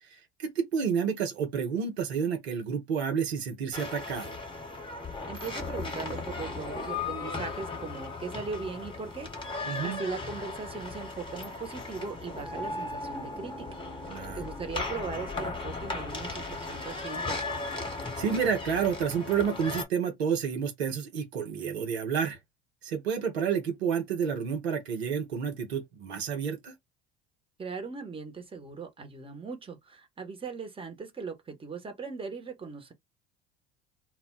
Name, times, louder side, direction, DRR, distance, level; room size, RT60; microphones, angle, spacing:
voice 1, 0.1-4.4 9.7-10.0 14.1-14.4 18.2-22.4 22.8-26.7, right 7 dB, 80° right, 0.8 m, -30 dB
sound 1, 3.7-19.9, left 3 dB, 15° left, 1.2 m, -37 dB
voice 2, 5.3-13.7 14.0-17.4 27.6-32.9, right 4 dB, 15° right, 1.0 m, -39 dB
2.2 x 2.1 x 3.7 m
hypercardioid pair, 70°, 31 cm